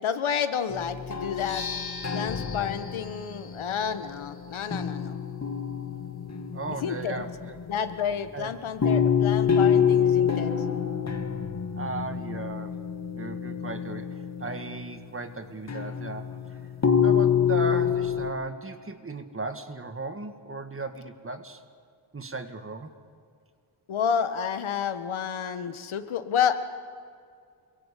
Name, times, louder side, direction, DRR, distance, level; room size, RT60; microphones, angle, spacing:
voice 1, 0.0-1.7 2.1-5.2 6.8-7.2 7.7-10.6 23.9-26.6, left 7 dB, 85° left, 9 dB, 1.7 m, -30 dB
sound 1, 0.7-4.3 4.7-8.0 8.8-14.9 15.7-18.3, left 7 dB, 35° left, 2.0 m, -27 dB
sound 2, 1.3-9.0, left 5 dB, 50° left, 2.8 m, -44 dB
voice 2, 6.5-7.6 8.3-8.5 11.8-12.8 13.1-16.4 17.0-21.6 22.1-22.9, right 3 dB, 25° right, 8 dB, 1.8 m, -36 dB
28.0 x 22.5 x 8.4 m, 2.2 s
wide cardioid pair, 105°, 47 cm